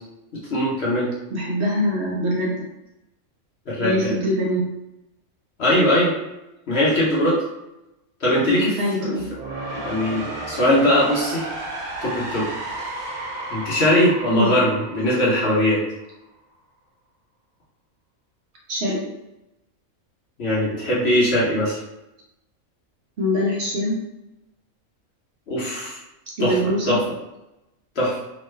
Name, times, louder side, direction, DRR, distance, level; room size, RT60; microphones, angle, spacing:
voice 1, 0.5-1.1 3.7-4.1 5.6-6.1 6.7-7.4 8.2-8.8 9.7-11.5 12.0-12.5 13.5-15.8 20.4-21.8 25.5-26.0 26.4-27.0 28.0-28.2, left 1 dB, 55° left, -7 dB, 1.0 m, -20 dB
voice 2, 1.3-2.5 3.8-4.6 8.8-9.3 14.3-14.5 18.7-19.0 23.2-23.9 26.4-27.0, left 1 dB, 60° right, -4 dB, 0.9 m, -23 dB
sound 1, 9.1-16.1, right 2 dB, 85° right, 1.1 m, -33 dB
3.0 x 2.2 x 3.2 m, 0.94 s
omnidirectional pair, 1.4 m